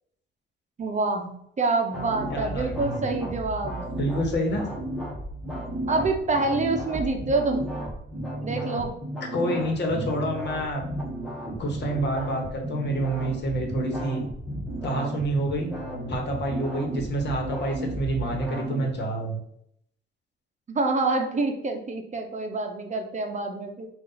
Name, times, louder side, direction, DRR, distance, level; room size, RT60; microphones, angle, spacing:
voice 1, 0.8-1.3 1.6-3.9 5.9-7.6 8.4-8.9 20.7-23.9, right 3 dB, 35° right, 4 dB, 0.7 m, -26 dB
sound 1, 1.9-18.9, right 1 dB, ahead, 1.3 m, -33 dB
voice 2, 2.3-2.9 4.0-4.7 9.2-10.8 11.6-14.2 14.8-15.7 16.1-19.4, right 1 dB, 55° left, 2 dB, 1.2 m, -28 dB
5.3 x 2.5 x 3.8 m, 0.71 s
cardioid pair, 100°, 21 cm